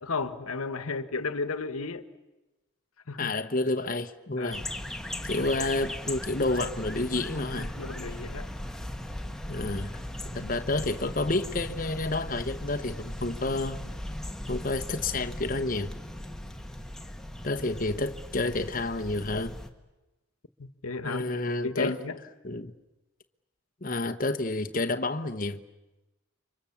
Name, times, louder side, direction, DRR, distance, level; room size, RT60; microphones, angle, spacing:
voice 1, 0.0-2.0 3.1-3.3 4.4-4.6 5.4-5.5 7.5-8.5 10.3-10.5 18.4-18.5 20.6-21.3 21.6-22.2, left 4 dB, 90° left, 1.3 m, -34 dB
voice 2, 3.2-4.6 5.2-7.7 9.5-9.9 10.3-13.8 14.5-15.9 17.4-19.5 21.0-22.0 22.4-22.7 23.8-25.6, left 2 dB, 40° left, 1.0 m, -29 dB
sound 1, 4.5-19.7, left 1 dB, ahead, 1.4 m, -38 dB
29.5 x 24.5 x 7.2 m
head